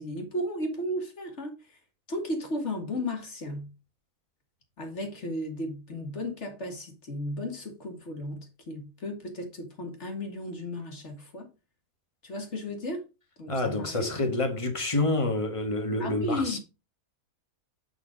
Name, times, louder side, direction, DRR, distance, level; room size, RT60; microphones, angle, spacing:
voice 1, 0.0-1.8 2.1-3.7 4.8-11.5 12.2-13.0 13.4-14.1 16.0-16.6, left 1 dB, 50° left, 1.9 m, -34 dB
voice 2, 13.5-16.6, left 2 dB, 20° left, 1.4 m, -28 dB
7.7 x 4.3 x 4.9 m
omnidirectional pair, 1.5 m